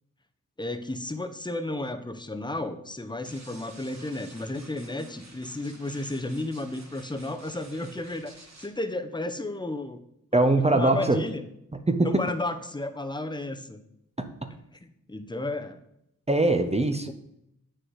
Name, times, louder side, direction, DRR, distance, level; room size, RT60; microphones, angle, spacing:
voice 1, 0.6-10.0 10.7-11.4 12.0-13.8 14.8-15.8, left 2 dB, 15° left, 8 dB, 0.8 m, -33 dB
sound 1, 3.3-8.7, right 2 dB, 50° right, 1.9 m, -51 dB
voice 2, 10.3-11.2 11.9-12.2 14.2-14.5 16.3-17.1, right 2 dB, 20° right, 7 dB, 0.7 m, -22 dB
7.8 x 6.4 x 4.8 m, 0.79 s
cardioid pair, 50°, 35 cm